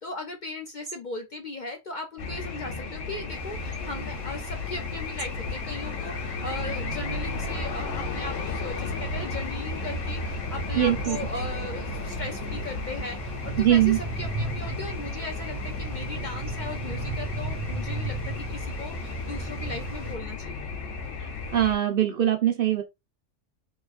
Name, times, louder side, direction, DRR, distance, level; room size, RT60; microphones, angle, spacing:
voice 1, 0.0-20.6, left 3 dB, 50° left, 0.6 m, -38 dB
sound 1, 2.2-21.7, left 3 dB, 80° left, 1.2 m, -34 dB
sound 2, 3.3-20.2, right 2 dB, 10° right, 2.0 m, -37 dB
voice 2, 10.8-11.2 13.6-14.0 21.5-22.8, right 11 dB, 55° right, 0.8 m, -22 dB
4.7 x 3.0 x 2.5 m
omnidirectional pair, 1.3 m